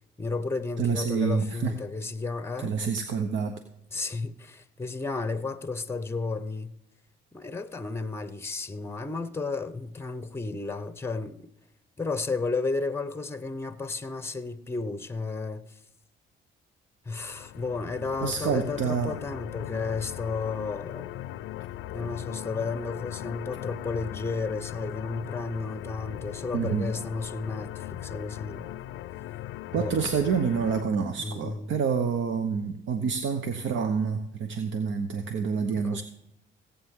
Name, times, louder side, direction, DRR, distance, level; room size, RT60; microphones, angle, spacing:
voice 1, 0.2-2.8 3.9-6.7 7.3-11.5 12.0-15.8 17.1-21.2 21.9-28.7 29.7-30.0 31.2-31.7 35.7-36.0, left 3 dB, 10° left, 0.8 m, -33 dB
voice 2, 0.8-1.7 2.6-3.6 18.2-19.2 26.5-26.9 29.7-36.0, right 6 dB, 75° right, 1.0 m, -28 dB
sound 1, 17.1-30.8, left 13 dB, 85° left, 0.5 m, -39 dB
17.5 x 8.4 x 3.7 m
cardioid pair, 90°, 20 cm